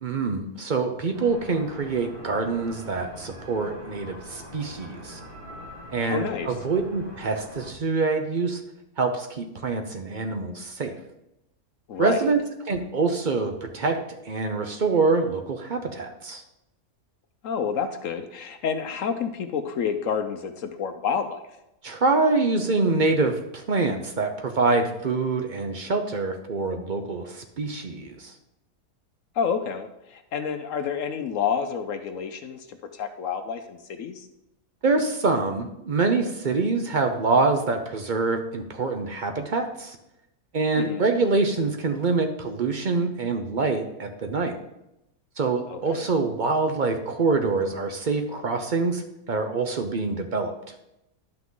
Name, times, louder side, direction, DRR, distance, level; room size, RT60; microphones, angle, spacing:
voice 1, 0.0-5.2 5.9-8.6 9.0-11.0 12.0-16.4 21.8-28.3 34.8-40.0 40.5-44.6 45.4-50.5, right 3 dB, 55° right, 6 dB, 0.5 m, -25 dB
sound 1, 1.1-7.7, equal, 35° right, 2.2 m, -43 dB
voice 2, 6.1-6.5 11.9-12.3 17.4-21.4 29.4-34.3 40.8-41.0 45.7-46.0, left 6 dB, 65° left, 8 dB, 0.9 m, -29 dB
11.5 x 5.9 x 3.8 m, 0.87 s
omnidirectional pair, 1.7 m